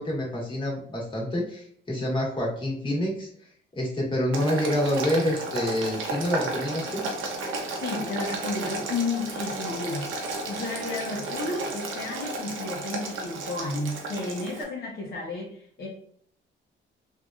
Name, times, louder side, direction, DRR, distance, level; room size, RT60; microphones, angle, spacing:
voice 1, 0.0-7.0, left 1 dB, 25° left, -3 dB, 1.5 m, -27 dB
Boiling, 4.3-14.6, right 2 dB, 85° right, 0.7 m, -33 dB
voice 2, 7.5-15.9, left 3 dB, 55° left, -4 dB, 0.9 m, -32 dB
3.4 x 2.6 x 2.4 m, 0.62 s
cardioid pair, 90°, 20 cm